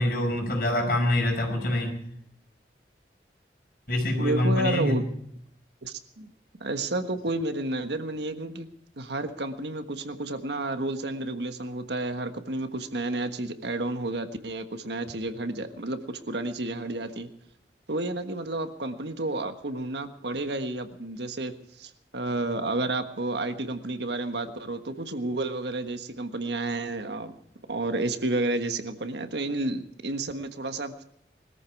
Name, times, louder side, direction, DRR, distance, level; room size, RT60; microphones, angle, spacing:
voice 1, 0.0-2.0 3.9-5.0, left 1 dB, 55° left, 2 dB, 5.4 m, -25 dB
voice 2, 4.2-5.0 5.8-6.3 6.6-8.7 9.0-17.3 17.9-21.5 21.8-27.4 27.7-31.0, right 2 dB, 75° right, 8 dB, 1.4 m, -31 dB
21.0 x 14.0 x 4.7 m, 0.71 s
head